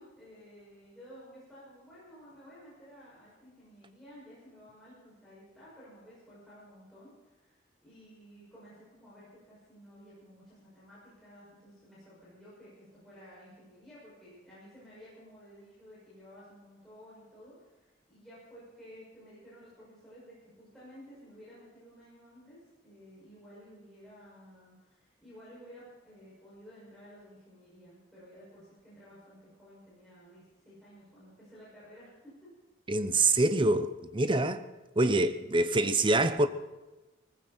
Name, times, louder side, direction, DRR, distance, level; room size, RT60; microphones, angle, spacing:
voice 1, 0.0-32.5, equal, ahead, 6.3 m, -54 dB
voice 2, 32.9-34.6 35.0-36.5, right 2 dB, 25° right, 0.8 m, -25 dB
20.0 x 15.5 x 4.4 m
head